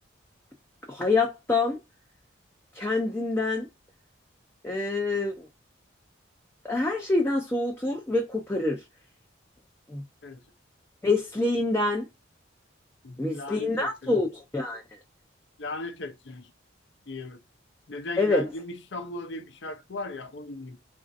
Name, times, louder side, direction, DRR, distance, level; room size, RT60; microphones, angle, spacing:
voice 1, 0.9-1.8 2.7-3.7 4.6-5.5 6.6-8.8 9.9-10.0 11.0-12.1 13.2-14.8 18.2-18.5, left 2 dB, 10° left, 0.5 m, -26 dB
voice 2, 13.0-14.2 15.6-16.5 17.1-17.4 17.9-20.8, left 2 dB, 65° left, 0.6 m, -37 dB
4.2 x 2.5 x 2.5 m
head